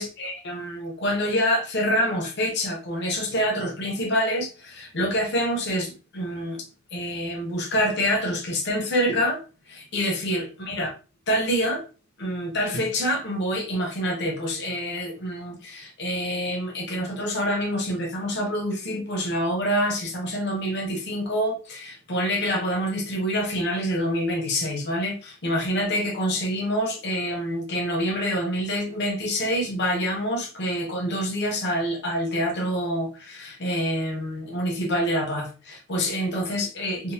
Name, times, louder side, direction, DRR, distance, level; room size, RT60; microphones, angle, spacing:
voice 1, 0.0-6.6 6.9-10.9 11.3-11.8 12.2-37.1, equal, 50° left, 0.7 m, -26 dB
3.7 x 2.0 x 2.7 m
head